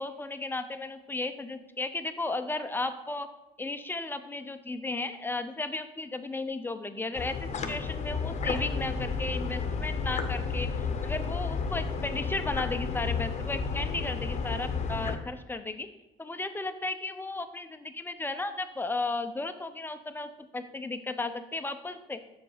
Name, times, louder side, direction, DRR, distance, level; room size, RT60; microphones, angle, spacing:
voice 1, 0.0-3.3 3.6-10.7 11.0-15.9 16.2-22.2, left 2 dB, 10° left, 9 dB, 0.5 m, -34 dB
sound 1, 7.1-15.1, left 5 dB, 40° left, 0.8 m, -32 dB
6.7 x 5.2 x 4.9 m, 0.97 s
cardioid pair, 110°, 17 cm